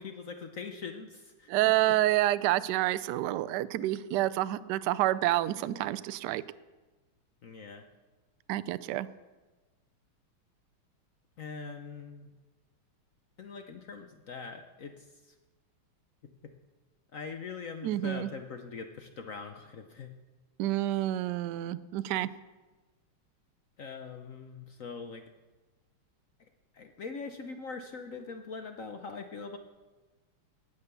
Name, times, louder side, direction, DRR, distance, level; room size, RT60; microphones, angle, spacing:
voice 1, 0.0-1.5 7.4-7.9 11.4-12.3 13.4-15.3 16.4-16.5 17.1-20.1 23.8-25.3 26.7-29.6, left 4 dB, 60° left, 6 dB, 0.8 m, -42 dB
voice 2, 1.5-6.4 8.5-9.1 17.8-18.3 20.6-22.3, right 15 dB, 80° right, 14 dB, 0.9 m, -28 dB
18.0 x 6.8 x 6.8 m, 1.2 s
omnidirectional pair, 2.4 m